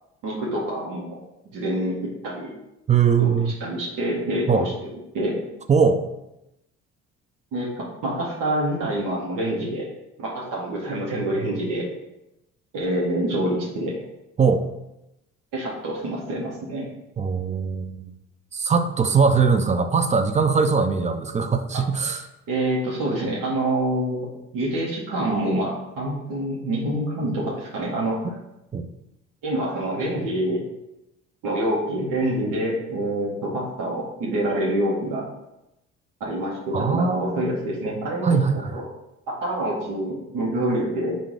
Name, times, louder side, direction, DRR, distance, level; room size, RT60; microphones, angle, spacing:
voice 1, 0.2-1.2 1.5-2.5 3.2-5.4 7.5-9.9 10.2-11.9 12.7-14.0 15.5-16.9 22.1-22.2 22.5-24.3 24.5-28.3 29.4-30.6 31.4-35.2 36.2-38.8 39.4-41.2, right 1 dB, 65° right, -5 dB, 1.2 m, -26 dB
voice 2, 2.9-3.5 4.5-4.7 5.7-6.0 14.4-14.6 17.2-18.1 18.5-22.2 28.7-28.9 36.7-37.4 38.2-38.8, right 5 dB, 20° right, 8 dB, 0.4 m, -21 dB
3.7 x 2.6 x 4.6 m, 0.90 s
hypercardioid pair, 55°, 36 cm